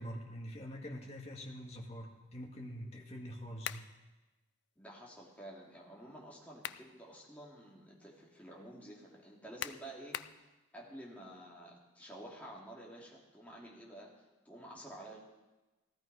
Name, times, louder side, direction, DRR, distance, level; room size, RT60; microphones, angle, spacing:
voice 1, 0.0-3.9, equal, 30° left, 0 dB, 1.9 m, -45 dB
sound 1, 3.6-3.9 6.3-6.9 7.4-7.5 9.6-10.4, left 10 dB, 60° left, 0.4 m, -41 dB
voice 2, 4.8-10.5 10.7-15.2, right 1 dB, 5° left, -5 dB, 2.8 m, -51 dB
16.0 x 13.0 x 4.9 m, 1.1 s
head